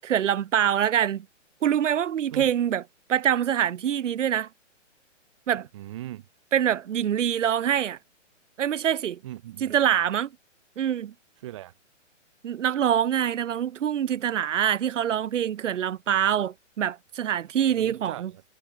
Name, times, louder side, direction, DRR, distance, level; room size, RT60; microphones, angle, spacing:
voice 1, 0.0-1.2 1.6-2.8 3.1-4.5 5.5-5.7 6.5-8.0 8.6-9.2 9.6-10.3 10.8-11.1 12.4-18.3, right 9 dB, 75° right, 0.9 m, -25 dB
voice 2, 5.7-6.3 9.2-9.7 11.4-11.7 17.7-18.4, right 14 dB, 25° right, 0.8 m, -39 dB
hypercardioid pair, 165°, 38 cm